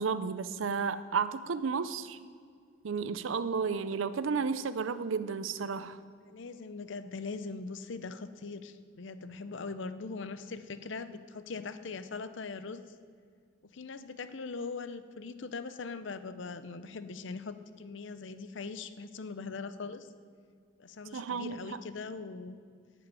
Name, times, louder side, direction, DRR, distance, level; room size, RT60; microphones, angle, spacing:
voice 1, 0.0-2.2 2.8-6.0 21.1-21.8, right 5 dB, 80° right, 14 dB, 0.5 m, -32 dB
voice 2, 6.3-12.8 13.7-20.1 20.8-22.6, left 4 dB, 65° left, 12 dB, 0.6 m, -41 dB
11.0 x 7.0 x 8.9 m, 2.1 s
head